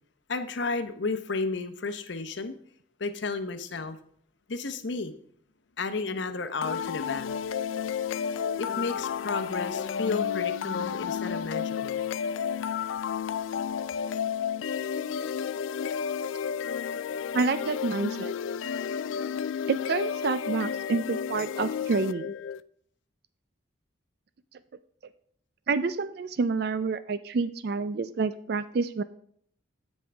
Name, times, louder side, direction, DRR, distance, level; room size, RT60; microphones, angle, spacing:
voice 1, 0.3-2.5 3.0-4.0 4.5-5.1 5.8-7.3 8.6-12.1, left 3 dB, 65° left, 9 dB, 0.8 m, -32 dB
sound 1, 6.6-22.6, left 7 dB, 80° left, 0.4 m, -31 dB
voice 2, 17.3-18.3 19.7-22.3 25.7-29.0, right 4 dB, 55° right, 13 dB, 0.4 m, -28 dB
16.0 x 5.4 x 3.4 m, 0.62 s
head